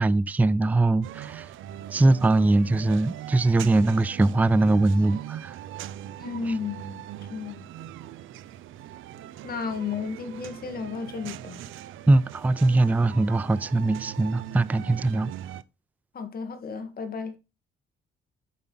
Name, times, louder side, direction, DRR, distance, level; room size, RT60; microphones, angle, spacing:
voice 1, 0.0-1.5 1.9-5.6 6.5-6.6 12.1-15.3, right 2 dB, 10° right, 0.3 m, -21 dB
sound 1, 1.0-15.6, right 12 dB, 80° right, 0.5 m, -41 dB
voice 2, 6.2-7.0 7.3-7.6 9.4-11.6 16.1-17.3, left 5 dB, 50° left, 1.8 m, -33 dB
7.4 x 5.7 x 3.9 m
cardioid pair, 90°, 20 cm